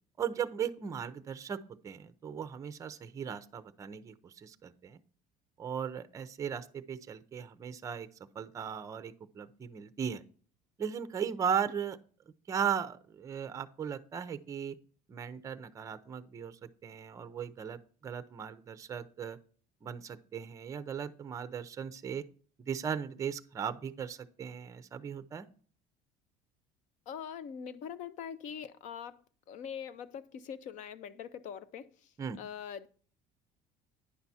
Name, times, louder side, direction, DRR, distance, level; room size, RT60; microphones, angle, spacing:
voice 1, 0.2-1.6 1.8-5.0 5.6-8.1 8.3-10.2 10.8-12.0 12.5-14.8 15.1-19.4 19.8-22.2 22.7-25.5 32.2-32.4, right 7 dB, 20° right, 12 dB, 0.5 m, -37 dB
voice 2, 27.1-29.2 29.5-32.1 32.4-32.9, left 8 dB, 55° left, 15 dB, 0.7 m, -43 dB
9.9 x 5.8 x 4.2 m, 0.43 s
cardioid pair, 160°, 15 cm